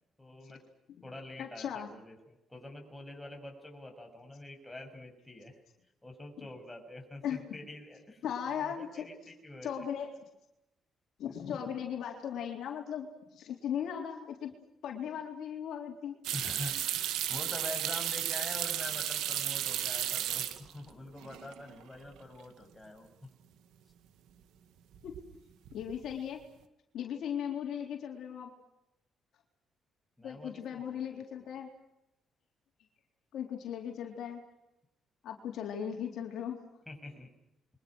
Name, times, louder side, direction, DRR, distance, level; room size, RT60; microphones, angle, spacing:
voice 1, 0.2-0.6 1.0-5.6 6.0-8.2 8.5-9.8 16.3-23.1 30.2-31.5 36.9-37.3, left 2 dB, 10° left, 2 dB, 7.9 m, -46 dB
voice 2, 1.4-1.9 6.4-6.5 7.2-7.5 8.2-9.1 9.6-10.1 11.2-14.5 14.8-16.1 25.0-25.1 25.7-26.4 26.9-28.5 30.2-31.7 33.3-34.4 35.2-36.6, left 8 dB, 75° left, 2 dB, 3.8 m, -37 dB
sound 1, 16.2-20.9 21.2-21.8 22.2-22.3 24.9-25.3 25.6-26.2, right 11 dB, 90° right, 1.9 m, -34 dB
29.0 x 24.0 x 6.4 m, 0.88 s
cardioid pair, 90°, 0 cm